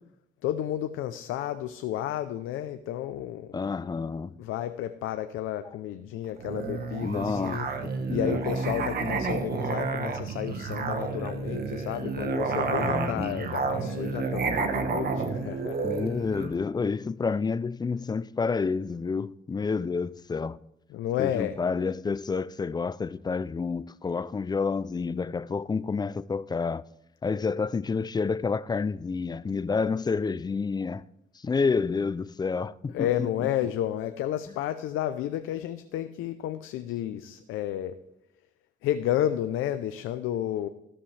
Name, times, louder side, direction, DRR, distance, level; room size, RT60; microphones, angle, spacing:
voice 1, 0.4-3.6 4.4-7.7 8.1-15.8 20.9-21.6 32.9-38.0 38.8-40.7, left 11 dB, 90° left, 0.6 m, -31 dB
voice 2, 3.5-4.4 7.0-8.4 12.8-13.4 15.8-20.6 21.2-26.8 27.2-31.1 31.3-33.5, left 4 dB, 20° left, 0.4 m, -29 dB
Musical instrument, 6.4-16.6, right 4 dB, 50° right, 1.2 m, -30 dB
13.5 x 13.0 x 3.3 m
cardioid pair, 90°, 20 cm